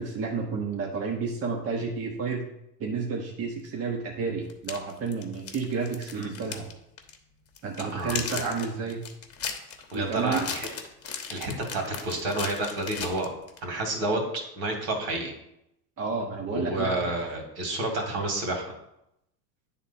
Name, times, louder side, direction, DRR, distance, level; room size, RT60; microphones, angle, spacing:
voice 1, 0.0-2.5 2.8-6.7 7.6-9.0 9.9-10.5 16.0-17.1, right 4 dB, 30° right, 0 dB, 1.1 m, -31 dB
sound 1, 3.6-3.7 4.5-6.7 7.0-7.2 7.6-13.6, left 6 dB, 30° left, 1.2 m, -37 dB
voice 2, 7.8-8.4 9.9-10.7 11.3-13.3 13.6-14.2 14.6-15.3 16.5-18.6, right 2 dB, 60° right, 2 dB, 2.4 m, -29 dB
9.5 x 3.7 x 4.2 m, 0.83 s
hypercardioid pair, 90°, 48 cm